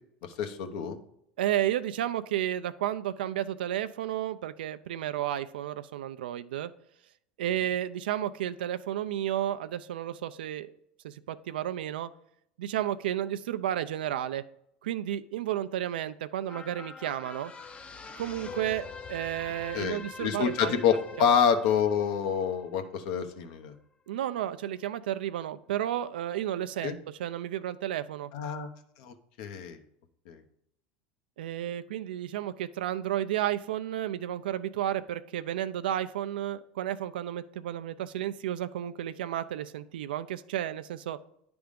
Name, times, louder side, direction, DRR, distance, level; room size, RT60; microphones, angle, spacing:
voice 1, 0.2-1.0 19.7-23.7 26.8-26.9 28.3-28.7 29.0-29.8 30.3-30.4, left 7 dB, 70° left, 7 dB, 0.9 m, -27 dB
voice 2, 1.4-6.7 7.4-10.7 11.0-12.1 12.6-14.4 14.8-17.5 18.2-20.7 21.2-21.4 24.1-28.3 31.4-41.2, right 12 dB, 80° right, 12 dB, 0.4 m, -32 dB
sound 1, 16.5-23.1 23.5-23.6, left 5 dB, 25° left, 0.6 m, -44 dB
10.0 x 3.5 x 5.2 m, 0.74 s
hypercardioid pair, 95°, 5 cm